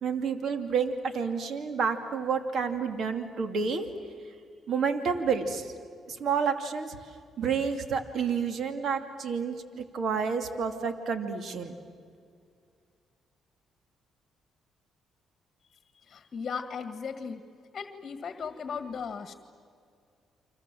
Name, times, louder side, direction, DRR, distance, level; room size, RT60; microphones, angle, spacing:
voice 1, 0.0-3.9 4.7-5.7 6.1-7.0 7.4-11.8, right 6 dB, 60° right, 7 dB, 2.4 m, -29 dB
voice 2, 16.1-17.4 17.7-19.3, left 6 dB, 45° left, 8 dB, 1.8 m, -36 dB
30.0 x 25.0 x 7.7 m, 2.3 s
cardioid pair, 90°, 0 cm